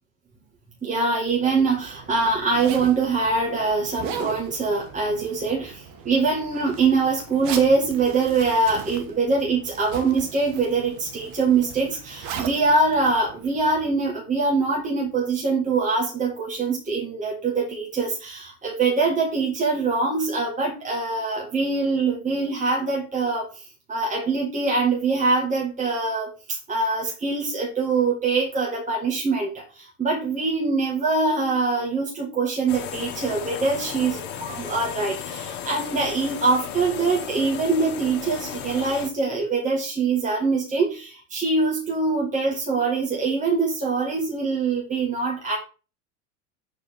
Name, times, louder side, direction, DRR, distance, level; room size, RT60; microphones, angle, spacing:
voice 1, 0.8-45.6, right 4 dB, 15° right, -2 dB, 2.0 m, -23 dB
Zipper (clothing), 1.3-14.0, right 7 dB, 50° right, 1.5 m, -39 dB
sound 1, 32.7-39.1, left 8 dB, 50° left, 1.4 m, -35 dB
6.6 x 4.4 x 4.6 m, 0.33 s
hypercardioid pair, 90°, 46 cm